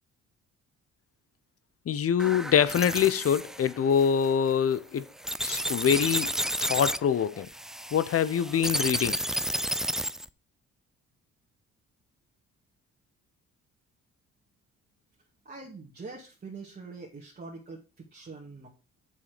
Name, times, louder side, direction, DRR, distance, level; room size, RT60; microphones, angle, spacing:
voice 1, 1.9-5.1 5.4-6.3 6.6-7.5 7.9-9.2, left 8 dB, 50° left, 0.9 m, -25 dB
sound 1, 2.2-10.3, right 1 dB, ahead, 0.3 m, -32 dB
voice 2, 15.5-18.7, right 3 dB, 30° right, 2.1 m, -44 dB
7.2 x 6.6 x 5.1 m
cardioid pair, 90°, 30 cm